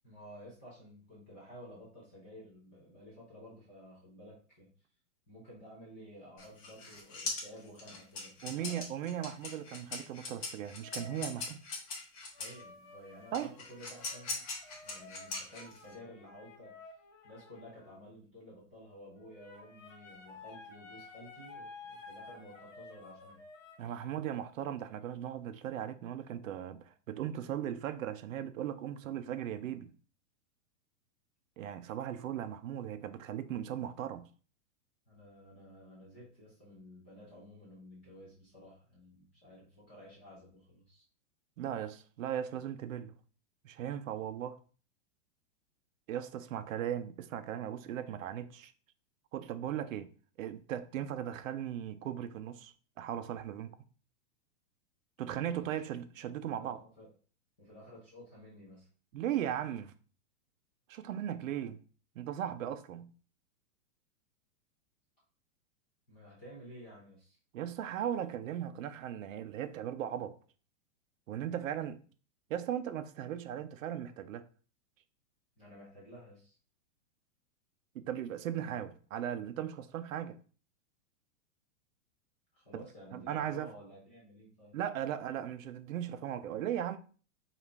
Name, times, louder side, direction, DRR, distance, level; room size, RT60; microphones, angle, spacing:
voice 1, 0.0-4.7 5.3-8.8 12.4-14.4 14.8-16.8 17.2-23.4 35.1-41.0 55.3-55.6 56.6-57.1 57.6-58.9 66.1-67.4 75.6-76.5 82.5-84.8, equal, 10° left, 0.4 m, -53 dB
sound 1, 6.4-12.6 13.3-15.9, left 3 dB, 25° left, 0.8 m, -41 dB
voice 2, 8.4-11.6 13.3-13.6 23.8-29.9 31.6-34.3 41.6-43.1 43.6-44.6 46.1-48.7 49.3-50.1 50.4-53.8 55.2-56.8 59.1-59.9 60.9-61.8 62.2-63.1 67.5-70.4 71.3-72.0 72.5-74.5 77.9-80.4 82.7-82.8 83.1-83.7 84.7-87.0, right 10 dB, 80° right, 0.6 m, -37 dB
sound 2, 10.8-11.5 12.3-18.0 19.2-23.9, left 4 dB, 75° left, 1.5 m, -53 dB
5.0 x 2.5 x 3.3 m
supercardioid pair, 175°, 39 cm